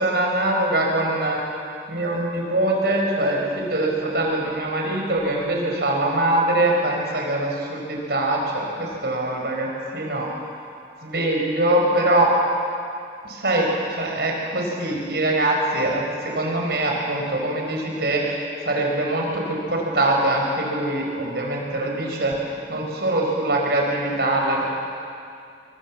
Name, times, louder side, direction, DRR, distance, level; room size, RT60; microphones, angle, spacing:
voice 1, 0.0-1.4 1.9-9.7 9.9-10.3 11.0-12.3 13.3-13.7 14.0-24.7, right 1 dB, 65° right, 0 dB, 4.9 m, -23 dB
25.0 x 24.0 x 7.4 m, 2.5 s
head